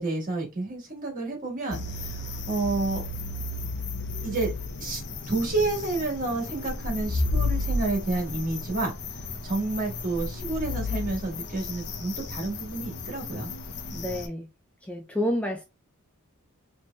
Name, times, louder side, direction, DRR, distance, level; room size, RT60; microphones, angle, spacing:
voice 1, 0.0-3.0 4.2-4.5 4.8-5.0 5.3-8.9 9.4-13.5, right 3 dB, 40° right, 1.5 m, -30 dB
sound 1, 1.7-14.3, left 2 dB, 55° left, 0.6 m, -33 dB
voice 2, 13.9-14.5 14.8-15.6, equal, 5° left, 0.3 m, -29 dB
4.4 x 2.9 x 2.2 m
head